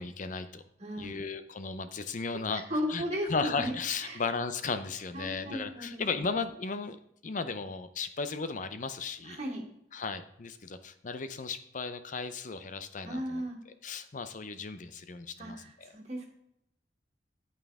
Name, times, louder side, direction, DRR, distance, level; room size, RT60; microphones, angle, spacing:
voice 1, 0.0-0.6 1.0-2.6 2.9-7.0 7.2-9.4 9.9-13.4 13.8-15.9, left 4 dB, 45° left, 11 dB, 0.5 m, -35 dB
voice 2, 0.8-1.2 2.5-3.7 4.0-4.2 5.1-6.2 9.2-9.7 13.0-13.6 15.4-16.3, equal, 35° right, -2 dB, 2.6 m, -36 dB
9.1 x 8.8 x 3.5 m, 0.76 s
head